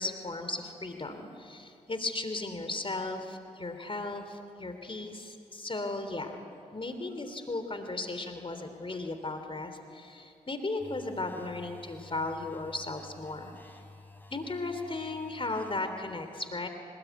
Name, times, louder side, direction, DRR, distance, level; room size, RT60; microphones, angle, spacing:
voice 1, 0.0-6.4 6.7-13.5 14.3-16.7, left 2 dB, 35° left, 7 dB, 3.3 m, -36 dB
sound 1, 10.8-15.8, left 2 dB, 10° left, 4.5 m, -52 dB
25.0 x 20.5 x 9.4 m, 2.4 s
supercardioid pair, 40°, 16 cm